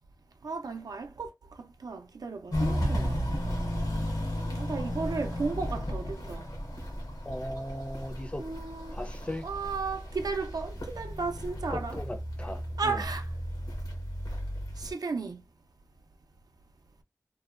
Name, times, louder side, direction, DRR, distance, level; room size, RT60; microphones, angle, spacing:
voice 1, 0.4-1.3 1.6-3.2 4.5-6.5 8.4-9.0 9.4-12.0 12.8-13.3 14.8-15.4, right 4 dB, 80° right, 0.3 m, -34 dB
Walk footsteps, 2.5-14.9, equal, 85° left, 0.9 m, -34 dB
voice 2, 7.2-8.4 8.9-9.4 11.7-13.0, left 1 dB, 20° left, 0.4 m, -37 dB
2.6 x 2.1 x 2.3 m
wide cardioid pair, 50°, 7 cm